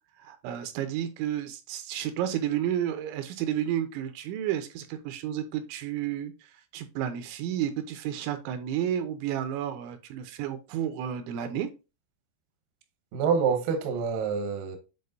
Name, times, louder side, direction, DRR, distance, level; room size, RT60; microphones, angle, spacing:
voice 1, 0.2-11.7, right 10 dB, 85° right, 3.1 m, -31 dB
voice 2, 13.1-14.8, right 6 dB, 70° right, 2.2 m, -26 dB
8.6 x 4.3 x 2.6 m
omnidirectional pair, 5.3 m